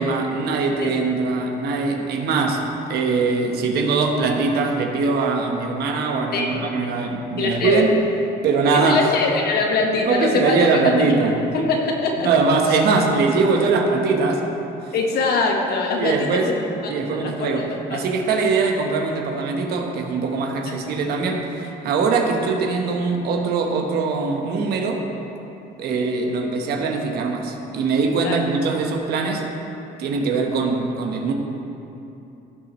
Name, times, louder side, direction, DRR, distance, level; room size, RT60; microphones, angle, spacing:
voice 1, 0.0-8.0 8.4-9.0 10.0-11.4 12.2-14.5 16.0-16.5 16.9-25.0 25.8-29.5 30.0-31.3, right 4 dB, 70° right, 2 dB, 1.2 m, -22 dB
voice 2, 6.3-6.6 7.4-7.8 8.7-10.7 11.0-11.1 11.5-12.3 14.9-16.5 16.8-16.9 17.2-18.0 20.7-20.8 28.2-28.4, left 3 dB, 65° left, 1 dB, 1.4 m, -23 dB
16.0 x 6.0 x 3.1 m, 2.9 s
cardioid pair, 110°, 17 cm